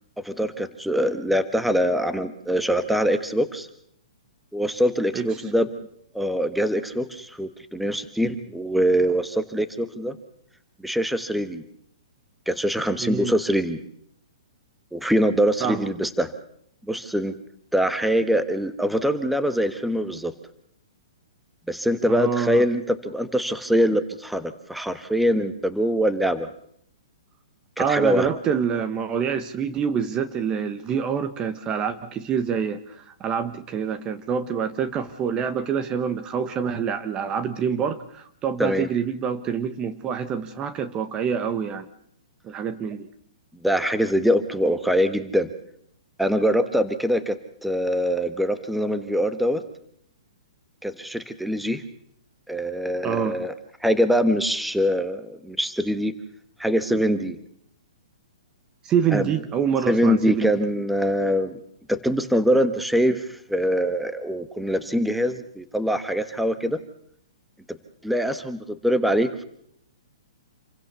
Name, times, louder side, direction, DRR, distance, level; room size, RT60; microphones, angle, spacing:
voice 1, 0.2-3.7 4.5-5.7 6.1-10.2 10.8-11.6 12.5-13.8 14.9-16.3 16.9-17.3 17.7-20.3 21.7-26.5 27.8-28.3 38.6-38.9 43.6-45.5 46.2-47.4 47.6-49.6 50.8-51.8 52.5-53.5 53.8-56.1 56.6-57.4 59.1-59.3 59.9-61.6 61.9-66.8 68.0-69.4, equal, ahead, 11 dB, 1.4 m, -23 dB
voice 2, 13.0-13.3 15.6-15.9 22.1-22.6 27.8-41.9 42.4-43.1 53.0-53.4 58.8-60.5, right 7 dB, 20° right, 11 dB, 1.3 m, -26 dB
27.5 x 16.0 x 6.9 m, 0.69 s
hypercardioid pair, 140°, 3 cm